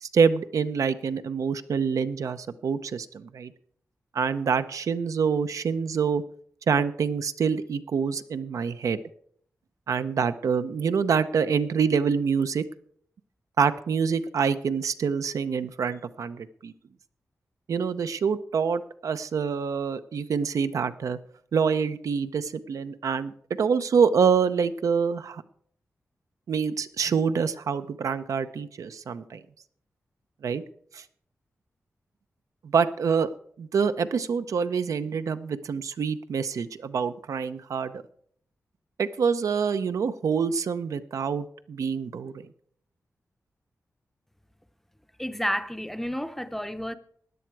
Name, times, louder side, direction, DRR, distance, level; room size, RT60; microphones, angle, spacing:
voice 1, 0.0-3.5 4.1-6.2 6.7-9.0 9.9-12.6 13.6-16.7 17.7-21.2 21.5-23.3 23.6-25.4 26.5-29.4 30.4-30.6 30.9-31.0 32.6-33.3 33.6-38.0 39.0-42.3, right 6 dB, 85° right, 0.7 m, -26 dB
voice 2, 45.2-46.9, equal, 5° left, 0.6 m, -30 dB
16.5 x 10.5 x 4.7 m
wide cardioid pair, 160°, 5 cm